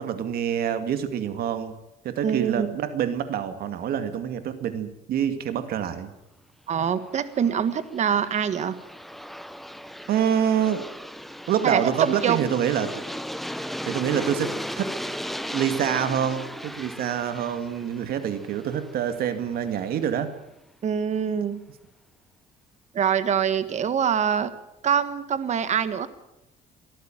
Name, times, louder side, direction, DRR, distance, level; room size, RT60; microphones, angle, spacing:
voice 1, 0.0-1.7 2.0-6.1 10.1-10.9 11.5-13.0 13.5-15.0 15.5-20.3, right 9 dB, 65° right, 10 dB, 2.3 m, -26 dB
voice 2, 2.2-2.7 6.7-8.7 11.6-12.5 20.8-21.6 22.9-24.5 24.8-26.1, right 8 dB, 45° right, 13 dB, 1.7 m, -24 dB
Aircraft, 7.1-19.9, equal, ahead, 0.9 m, -36 dB
24.0 x 14.0 x 9.1 m, 0.87 s
cardioid pair, 130°, 17 cm